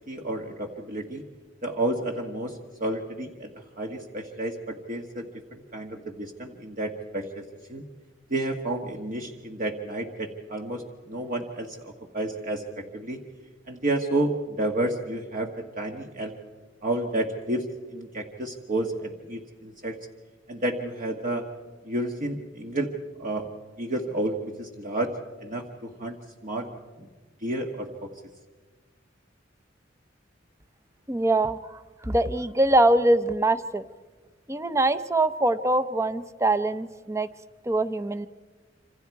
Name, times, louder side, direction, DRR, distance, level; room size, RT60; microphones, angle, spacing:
voice 1, 0.1-1.2 1.6-7.4 7.7-7.8 8.3-13.2 13.7-16.3 16.8-17.6 17.9-20.0 20.5-21.4 21.8-22.9 23.2-23.5 23.8-25.1 25.4-26.2 26.4-26.7 27.0-27.1 27.4-28.1, right 1 dB, 45° right, 3 dB, 1.4 m, -31 dB
voice 2, 31.1-33.8 34.5-37.3 37.7-38.3, right 2 dB, 15° right, 13 dB, 0.7 m, -23 dB
27.0 x 26.5 x 4.7 m, 1.4 s
head